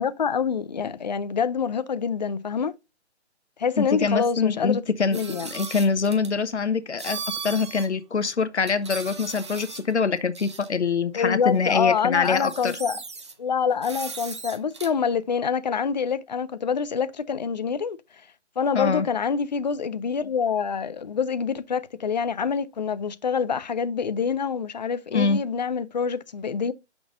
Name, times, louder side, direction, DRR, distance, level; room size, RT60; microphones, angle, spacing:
voice 1, 0.0-2.7 3.6-4.8 5.1-5.5 11.2-13.0 13.4-18.0 18.6-26.7, left 6 dB, 40° left, 0.4 m, -26 dB
voice 2, 3.8-12.8 18.7-19.1 25.1-25.4, left 5 dB, 80° left, 1.0 m, -24 dB
sound 1, 5.1-6.3 7.0-7.9 8.2-8.3 8.7-9.9 10.3-10.7 11.7-11.8 12.1-13.3 13.8-14.9, right 5 dB, 25° right, 0.5 m, -37 dB
7.6 x 6.0 x 2.5 m
figure-of-eight pair, 150°, 34 cm